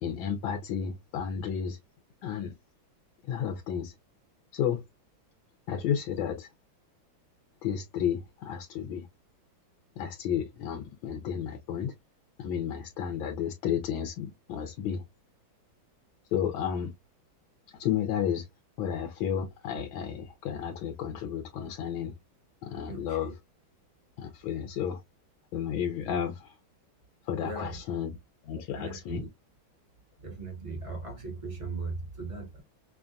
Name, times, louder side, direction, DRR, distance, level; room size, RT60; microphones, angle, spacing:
voice 1, 0.0-1.8 2.2-2.5 3.3-3.9 4.5-4.8 5.7-6.5 7.6-9.1 10.0-11.9 12.4-15.0 16.3-16.9 17.8-18.5 18.8-22.1 22.6-23.3 24.2-25.0 25.5-26.5 27.3-28.1 28.4-29.2, left 8 dB, 90° left, 1.5 m, -32 dB
voice 2, 22.9-23.3 27.4-27.8 28.8-29.3 30.2-32.6, right 3 dB, 20° right, 1.1 m, -38 dB
5.6 x 2.3 x 2.5 m
omnidirectional pair, 2.2 m